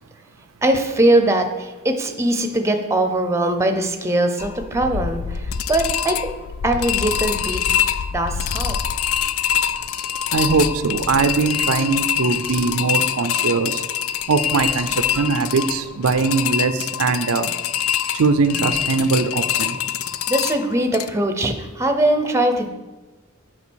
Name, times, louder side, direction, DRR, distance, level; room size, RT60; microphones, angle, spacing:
voice 1, 0.6-6.3 6.6-7.6 8.1-8.8 20.3-22.7, right 1 dB, 15° right, 6 dB, 0.6 m, -21 dB
sound 1, 4.4-21.1, left 9 dB, 75° left, 0.4 m, -25 dB
voice 2, 10.3-13.8 14.3-17.5 18.1-19.8, right 4 dB, 80° right, 11 dB, 0.5 m, -21 dB
8.5 x 4.8 x 6.2 m, 1.2 s
head